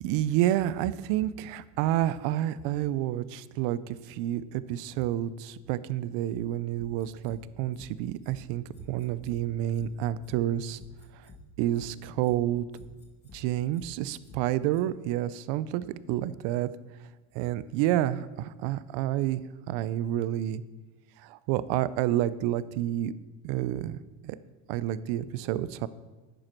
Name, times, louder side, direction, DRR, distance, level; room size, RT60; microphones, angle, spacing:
voice 1, 0.0-10.8 11.6-12.7 13.3-16.7 17.3-19.4 19.7-20.6 21.2-23.1 23.4-24.0 24.2-24.4 24.7-25.9, right 13 dB, 65° right, 16 dB, 0.6 m, -29 dB
sound 1, 6.8-7.4 7.7-7.9 8.2-8.4 8.7-9.4 9.7-9.9 10.2-10.4 10.7-11.4 11.7-11.9 12.2-12.4 12.7-13.4 13.7-13.9 14.2-14.4 14.7-14.8, left 4 dB, 20° left, 1.6 m, -50 dB
10.5 x 7.8 x 4.5 m, 1.2 s
cardioid pair, 135°, 47 cm